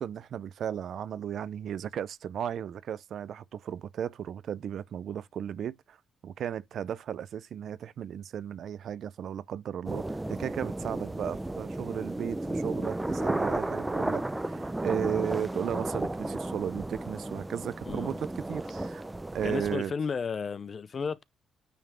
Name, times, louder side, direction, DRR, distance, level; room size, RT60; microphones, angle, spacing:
voice 1, 0.0-6.0 6.2-19.0 19.3-19.9, right 9 dB, 65° right, 0.4 m, -35 dB
sound 1, 9.9-19.8, right 2 dB, 15° right, 0.5 m, -33 dB
voice 2, 19.4-21.2, left 5 dB, 45° left, 0.5 m, -33 dB
9.1 x 3.4 x 3.3 m
cardioid pair, 90°, 0 cm